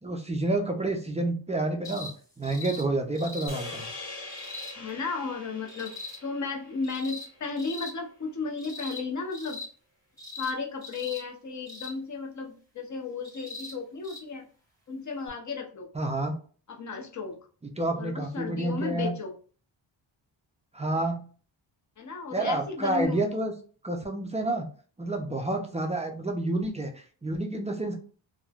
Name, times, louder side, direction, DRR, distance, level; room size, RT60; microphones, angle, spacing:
voice 1, 0.0-2.1 2.4-3.9 15.9-16.3 17.6-19.1 20.7-21.2 22.3-23.5 23.8-24.7 25.0-28.0, right 2 dB, 15° right, 3 dB, 0.3 m, -29 dB
sound 1, 1.8-2.1 2.4-2.8 3.1-3.5 4.3-4.7 5.7-6.2 6.8-7.3 7.6-7.9 8.6-9.0 9.3-9.7 10.2-10.5 10.8-11.2 11.7-11.9 13.2-13.7 14.0-14.2 15.3-15.4, left 3 dB, 10° left, 1.1 m, -40 dB
sound 2, 3.5-7.9, left 3 dB, 65° left, 1.3 m, -43 dB
voice 2, 4.7-5.9 6.2-9.6 10.4-14.5 14.9-15.9 16.7-17.4 18.0-19.3 22.0-23.3, left 4 dB, 40° left, 2 dB, 0.6 m, -34 dB
3.1 x 2.0 x 2.3 m, 0.41 s
wide cardioid pair, 115°, 45 cm